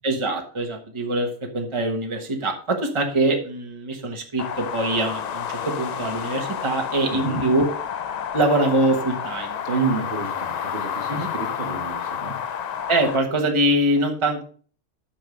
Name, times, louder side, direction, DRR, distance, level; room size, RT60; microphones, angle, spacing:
voice 1, 0.0-7.7 8.3-9.8 11.1-11.3 12.9-14.4, right 1 dB, 25° right, 2 dB, 1.3 m, -23 dB
sound 1, 4.4-13.2, left 8 dB, 60° left, 0.4 m, -30 dB
voice 2, 7.1-7.5 9.6-12.4, right 4 dB, 50° right, 4 dB, 1.5 m, -29 dB
9.0 x 5.7 x 5.1 m, 0.43 s
omnidirectional pair, 1.3 m